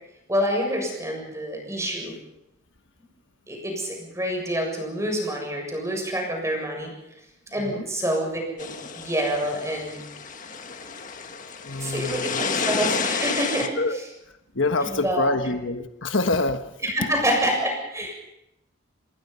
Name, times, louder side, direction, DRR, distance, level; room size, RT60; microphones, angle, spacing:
voice 1, 0.3-2.2 3.5-7.2 7.5-10.0 11.8-14.0 14.8-15.3 16.8-18.1, equal, 15° right, 2 dB, 7.2 m, -27 dB
sound 1, 8.6-13.7, left 5 dB, 40° left, 1.7 m, -30 dB
voice 2, 11.6-12.4 13.8-14.0 14.5-16.6, left 2 dB, 65° left, 8 dB, 1.3 m, -26 dB
27.5 x 21.5 x 5.6 m, 0.87 s
head